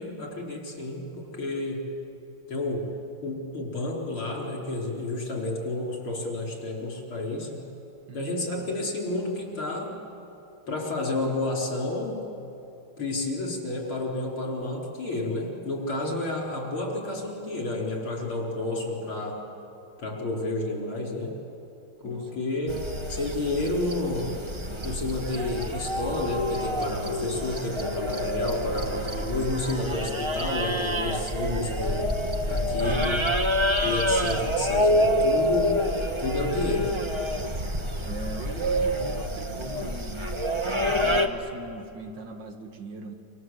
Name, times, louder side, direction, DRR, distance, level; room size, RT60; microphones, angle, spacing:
voice 1, 0.0-1.9 2.5-2.9 3.2-7.7 8.1-9.9 10.7-12.2 13.0-19.4 20.0-21.4 22.0-22.8 23.1-24.3 24.8-32.1 32.5-33.3 33.8-35.8 36.2-37.0, left 2 dB, 75° left, -1 dB, 5.4 m, -30 dB
voice 2, 8.1-8.4 8.7-8.8 22.0-22.4 38.0-40.4 40.9-43.1, right 3 dB, 60° right, 5 dB, 2.2 m, -40 dB
sound 1, 22.7-41.3, equal, 20° right, 0.8 m, -27 dB
28.5 x 26.0 x 7.9 m, 2.8 s
omnidirectional pair, 2.3 m